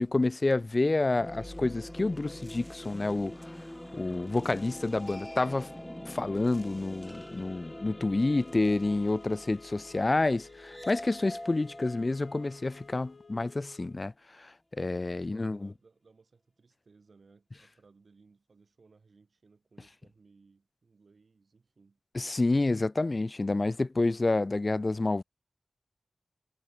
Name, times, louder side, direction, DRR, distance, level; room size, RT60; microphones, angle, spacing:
voice 1, 0.0-3.3 3.9-5.7 6.1-14.1 14.4-15.7 22.1-25.2, left 2 dB, 45° left, 0.6 m, -29 dB
sound 1, 1.1-13.3, left 1 dB, 10° left, 1.0 m, -45 dB
sound 2, 7.0-14.0, left 4 dB, 85° left, 2.3 m, -54 dB
voice 2, 15.1-22.0, right 4 dB, 75° right, 6.3 m, -62 dB
wide cardioid pair, 60°, 0 cm